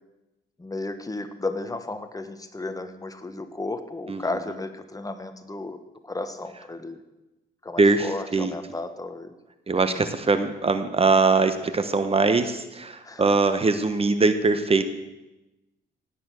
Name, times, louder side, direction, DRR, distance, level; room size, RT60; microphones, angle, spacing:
voice 1, 0.6-7.0 7.6-9.4 13.0-13.4, left 2 dB, 15° left, 9 dB, 1.2 m, -34 dB
voice 2, 7.8-8.5 9.7-14.8, right 3 dB, 30° right, 10 dB, 1.1 m, -22 dB
17.5 x 9.0 x 6.3 m, 1.0 s
cardioid pair, 90°, 20 cm